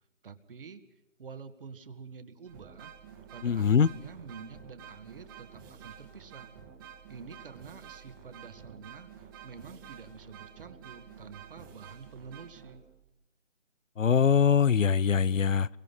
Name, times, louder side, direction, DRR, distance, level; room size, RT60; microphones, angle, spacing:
voice 1, 0.2-0.8 1.2-2.9 3.3-6.5 7.1-12.8, right 5 dB, 45° right, 2.1 m, -48 dB
sound 1, 2.5-13.1, right 8 dB, 15° right, 2.1 m, -50 dB
voice 2, 3.4-3.9 14.0-15.7, left 7 dB, 80° left, 0.8 m, -23 dB
29.5 x 24.0 x 5.8 m
figure-of-eight pair, 160°, 38 cm